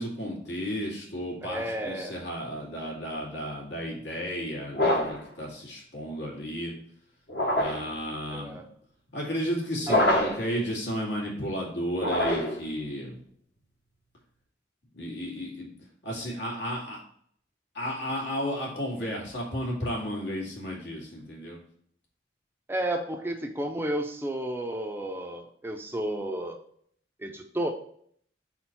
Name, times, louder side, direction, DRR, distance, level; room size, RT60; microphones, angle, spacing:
voice 1, 0.0-6.7 7.6-8.6 9.1-13.2 14.9-15.7 16.0-17.0 17.7-21.6, equal, 80° left, -2 dB, 2.2 m, -33 dB
voice 2, 1.4-2.2 8.3-8.6 9.9-10.4 22.7-26.6 27.2-27.7, right 1 dB, 10° right, 4 dB, 0.5 m, -32 dB
sound 1, 4.7-5.3 7.3-7.9 9.8-10.5 11.9-12.7, left 1 dB, 65° left, 1.4 m, -25 dB
4.3 x 4.3 x 5.8 m, 0.63 s
head